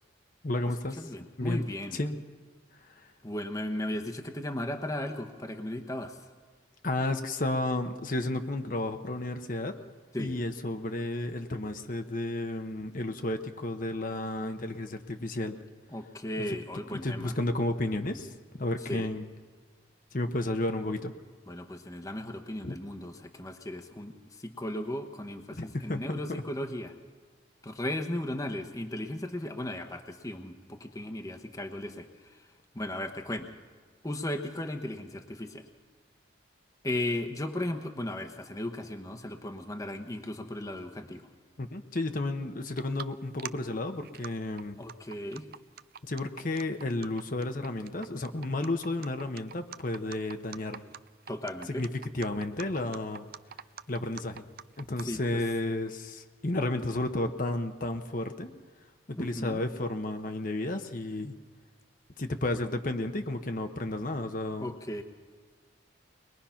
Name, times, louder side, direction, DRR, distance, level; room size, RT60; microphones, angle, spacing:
voice 1, 0.4-1.6 1.9-2.2 2.8-3.1 6.8-9.8 10.2-15.5 16.5-16.6 16.9-19.3 20.1-21.1 22.6-22.8 25.6-26.4 41.6-44.8 46.0-50.8 51.7-53.2 53.9-54.4 54.8-58.5 59.1-61.4 62.2-64.7, left 2 dB, 45° left, 6 dB, 1.0 m, -32 dB
voice 2, 1.0-2.0 3.2-6.2 10.1-10.4 15.9-17.3 18.9-19.1 21.5-26.9 27.6-32.4 32.7-33.5 34.0-35.6 36.8-41.3 44.8-45.5 51.3-51.8 55.0-55.2 59.2-59.6 64.6-65.0, left 1 dB, 20° left, 5 dB, 1.0 m, -36 dB
sound 1, 42.7-43.1 43.4-43.5 44.0-44.3 44.6-55.0, right 8 dB, 50° right, 0.5 m, -43 dB
23.0 x 21.0 x 5.8 m, 1.5 s
head